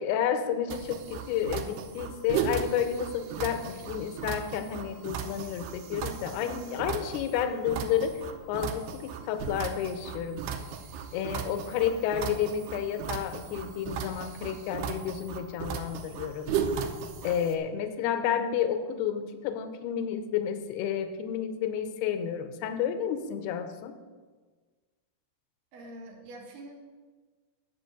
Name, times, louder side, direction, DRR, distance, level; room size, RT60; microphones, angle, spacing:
voice 1, 0.0-8.2 8.5-10.5 11.1-16.6 17.2-24.0, left 9 dB, 80° left, 9 dB, 2.6 m, -31 dB
sound 1, 0.7-17.6, right 7 dB, 80° right, 2.7 m, -36 dB
voice 2, 6.4-6.9 11.6-12.1 18.0-18.5 25.7-26.7, right 1 dB, 65° right, 1 dB, 2.5 m, -46 dB
10.5 x 5.2 x 7.6 m, 1.4 s
omnidirectional pair, 4.8 m